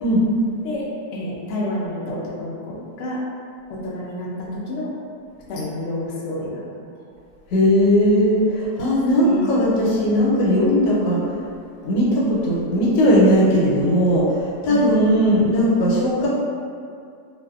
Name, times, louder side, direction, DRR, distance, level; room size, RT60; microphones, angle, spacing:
voice 1, 1.1-3.2 3.7-4.9 5.5-6.6 6.9-7.0 9.2-9.7 14.7-15.0, left 1 dB, 70° left, -5 dB, 0.7 m, -29 dB
voice 2, 7.5-11.2 11.8-16.3, equal, 85° left, -6 dB, 1.3 m, -18 dB
2.5 x 2.4 x 2.3 m, 2.3 s
omnidirectional pair, 1.8 m